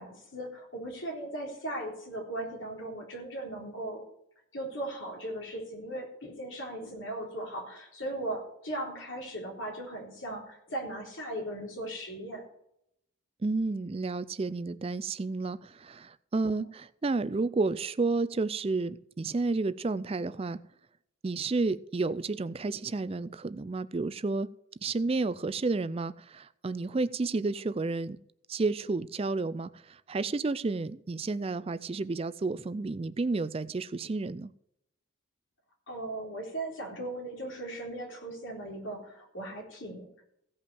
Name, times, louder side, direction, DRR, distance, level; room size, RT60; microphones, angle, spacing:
voice 1, 0.0-4.0 4.5-12.4 16.5-16.6 35.9-40.1, right 1 dB, 65° left, -1 dB, 3.8 m, -38 dB
voice 2, 13.4-20.6 21.2-24.5 24.8-28.2 28.5-34.5, right 3 dB, 25° right, 15 dB, 0.4 m, -31 dB
16.0 x 5.5 x 6.9 m, 0.76 s
head